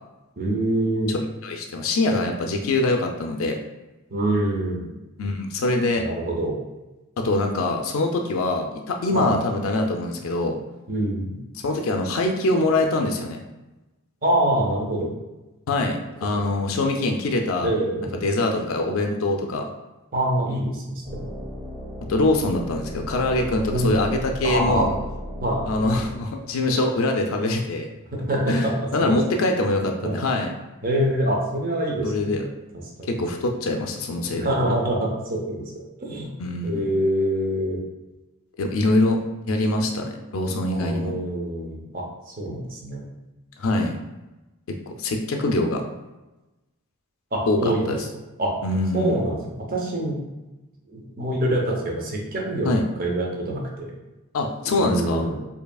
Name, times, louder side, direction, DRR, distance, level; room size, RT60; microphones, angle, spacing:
voice 1, 0.4-1.1 4.1-4.9 6.0-6.6 9.1-9.4 10.9-11.4 14.2-15.1 17.6-18.3 20.1-21.3 23.7-24.0 24.4-24.9 25.4-25.7 28.1-28.7 29.0-29.2 30.0-30.2 30.8-32.4 33.0-33.2 34.3-35.7 36.0-36.3 36.6-37.8 40.7-43.0 47.3-48.0 48.4-48.5 48.9-50.2 50.9-52.7 53.0-53.9 54.8-55.4, right 1 dB, 40° right, -1 dB, 0.7 m, -25 dB
voice 2, 1.1-3.6 5.2-6.1 7.2-10.6 11.5-13.4 15.7-17.7 18.2-19.7 22.1-24.9 25.7-27.9 28.5-30.5 32.0-32.4 33.1-34.5 36.4-36.8 38.6-39.2 39.5-41.1 43.6-44.0 44.7-45.8 47.5-48.0 48.6-49.2 52.6-52.9 54.3-55.3, left 2 dB, 65° left, 3 dB, 0.4 m, -24 dB
sound 1, 21.0-26.2, equal, 5° right, 1.2 m, -35 dB
4.7 x 2.7 x 2.3 m, 1.0 s
head